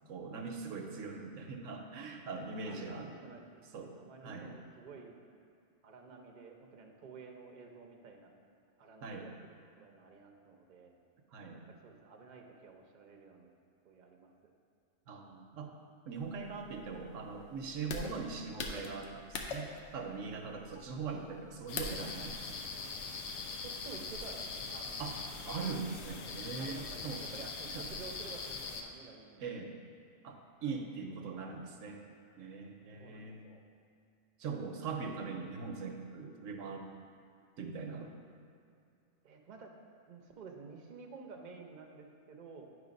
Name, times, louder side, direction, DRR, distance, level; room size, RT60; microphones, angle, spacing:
voice 1, 0.1-3.1 3.7-3.9 4.2-4.6 9.0-9.3 11.3-11.6 15.1-15.7 16.1-22.6 25.0-25.1 25.4-27.2 27.7-27.9 29.4-29.7 30.2-32.0 32.4-33.4 34.4-36.9 37.6-38.1, right 4 dB, 75° right, 3 dB, 1.0 m, -41 dB
voice 2, 2.6-3.6 3.9-5.2 5.8-8.3 8.8-11.0 11.7-13.5 13.8-14.5 18.0-18.2 23.6-25.1 26.2-29.7 30.6-30.8 31.2-32.0 33.0-33.6 39.2-39.8 40.1-42.7, right 4 dB, 45° right, 1 dB, 0.6 m, -52 dB
sound 1, 16.2-22.1, left 3 dB, 65° left, 0.9 m, -43 dB
sound 2, 21.7-28.8, left 4 dB, 85° left, 1.1 m, -42 dB
9.3 x 3.2 x 5.1 m, 2.5 s
omnidirectional pair, 1.4 m